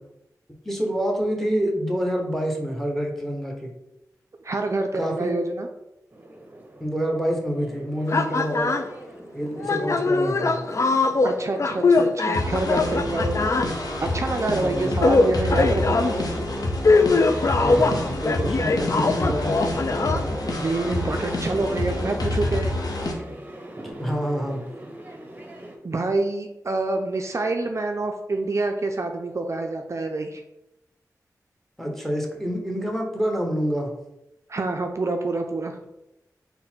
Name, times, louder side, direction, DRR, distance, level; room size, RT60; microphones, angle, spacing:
voice 1, 0.6-3.7 4.9-5.3 6.8-8.8 9.3-10.6 14.6-14.9 17.6-20.3 24.0-24.6 31.8-33.9, equal, 5° left, 2 dB, 0.9 m, -27 dB
voice 2, 4.4-5.7 11.2-13.5 14.0-16.3 20.6-22.7 25.8-30.4 34.5-35.8, right 2 dB, 45° right, 4 dB, 0.4 m, -27 dB
sound 1, 6.1-25.8, right 1 dB, 25° right, 0.7 m, -41 dB
sound 2, 8.1-8.9 9.6-13.7 15.0-16.1 16.9-20.3, left 3 dB, 50° left, 0.3 m, -21 dB
sound 3, 11.9-12.0 12.3-23.1, left 1 dB, 70° left, 0.7 m, -28 dB
3.8 x 2.1 x 4.3 m, 0.89 s
cardioid pair, 50°, 7 cm